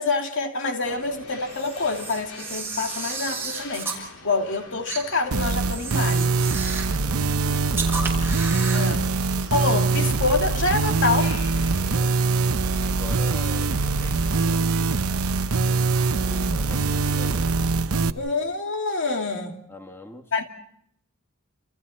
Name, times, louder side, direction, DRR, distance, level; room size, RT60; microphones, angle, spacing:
voice 1, 0.0-6.3 8.7-9.1 9.5-11.4 16.3-16.6 18.2-19.5 20.3-20.4, left 3 dB, 60° left, 2.7 m, -26 dB
sound 1, 0.8-17.7, left 2 dB, 85° left, 4.6 m, -46 dB
Camera, 1.5-4.0 4.9-5.0 5.7-7.0 7.7-8.9, right 4 dB, 10° right, 6.4 m, -33 dB
sound 2, 5.3-18.1, right 4 dB, 80° right, 0.9 m, -23 dB
voice 2, 7.0-8.3 11.9-12.2 12.8-14.9 16.2-18.6 19.7-20.3, left 1 dB, 10° left, 2.1 m, -44 dB
29.5 x 29.0 x 4.3 m
head